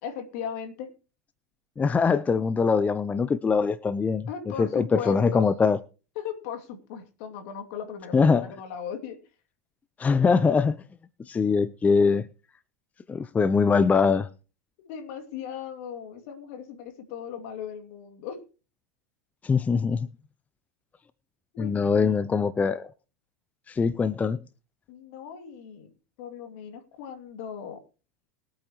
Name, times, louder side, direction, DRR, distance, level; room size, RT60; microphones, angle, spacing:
voice 1, 0.0-0.9 4.3-5.5 6.2-9.2 14.8-18.4 21.5-22.2 24.9-25.9 26.2-27.8, left 8 dB, 60° left, 2.6 m, -37 dB
voice 2, 1.8-4.3 4.6-5.8 8.1-8.4 10.0-10.8 11.3-12.3 13.1-14.3 19.4-20.1 21.6-22.8 23.7-24.4, left 5 dB, 15° left, 0.6 m, -22 dB
21.5 x 8.8 x 3.0 m
hypercardioid pair, 95°, 8 cm